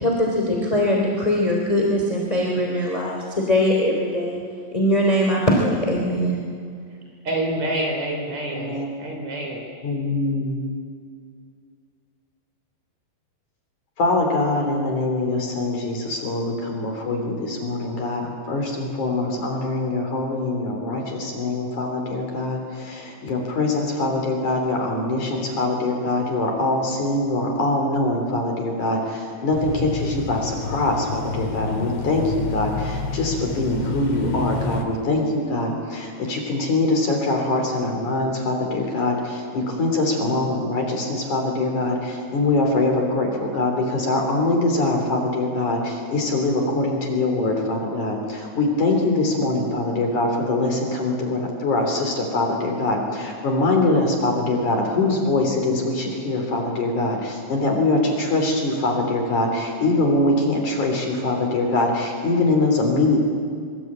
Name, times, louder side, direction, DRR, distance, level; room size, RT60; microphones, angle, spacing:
voice 1, 0.0-3.2 3.5-4.3 4.7-6.4, equal, 10° left, -1 dB, 2.7 m, -21 dB
voice 2, 7.2-9.6, right 1 dB, 40° right, 1 dB, 5.3 m, -27 dB
voice 3, 8.5-8.9 9.8-10.6 14.0-63.2, left 2 dB, 45° left, 2 dB, 4.5 m, -23 dB
sound 1, 29.5-34.8, left 4 dB, 85° left, 5.0 m, -29 dB
25.0 x 24.0 x 8.9 m, 2.1 s
omnidirectional pair, 5.3 m